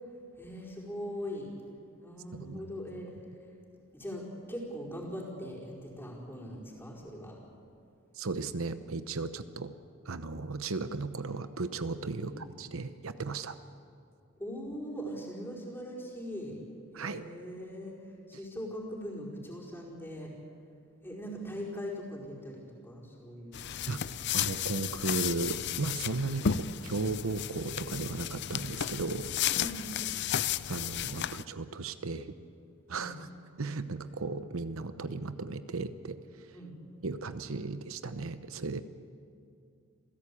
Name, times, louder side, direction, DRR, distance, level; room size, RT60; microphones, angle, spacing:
voice 1, 0.4-1.5 2.0-3.1 3.9-7.4 12.2-12.3 14.4-16.6 16.9-17.9 18.3-20.3 21.0-24.1 26.4-26.6 29.5-29.9 32.9-33.1 36.5-36.7, equal, 10° left, -3 dB, 4.7 m, -41 dB
voice 2, 2.3-2.6 8.1-9.7 10.0-13.6 16.9-17.3 18.3-18.4 23.9-24.0 24.3-29.3 30.7-32.3 32.9-33.3 33.6-36.6 37.0-38.8, right 3 dB, 75° right, 11 dB, 0.8 m, -36 dB
sound 1, 23.5-31.4, left 9 dB, 50° left, 0.5 m, -33 dB
28.0 x 16.0 x 8.5 m, 2.5 s
head